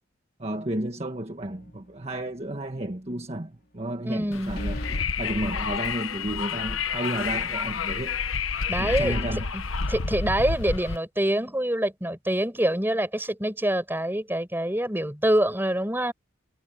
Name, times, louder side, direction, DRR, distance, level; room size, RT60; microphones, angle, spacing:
voice 1, 0.4-4.8 5.2-8.2 8.8-9.5, right 1 dB, 30° right, 1.6 m, -32 dB
sound 1, 1.4-1.9 2.3-2.4 4.5-5.1, left 1 dB, 50° left, 3.9 m, -36 dB
voice 2, 4.0-4.6 8.7-9.2 9.5-9.6 9.9-16.1, right 1 dB, 10° right, 5.7 m, -25 dB
Wind, 4.3-11.0, left 5 dB, 85° left, 1.3 m, -29 dB
head